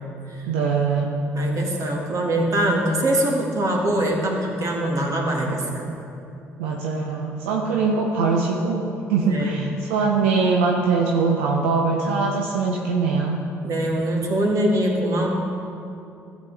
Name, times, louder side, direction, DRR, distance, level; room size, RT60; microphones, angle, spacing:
voice 1, 0.5-1.1 6.6-13.4, right 4 dB, 85° right, 0 dB, 0.6 m, -22 dB
voice 2, 1.3-5.9 9.2-9.7 13.6-15.3, right 1 dB, 55° right, 0 dB, 1.8 m, -23 dB
13.5 x 7.4 x 3.3 m, 2.6 s
hypercardioid pair, 55°, 7 cm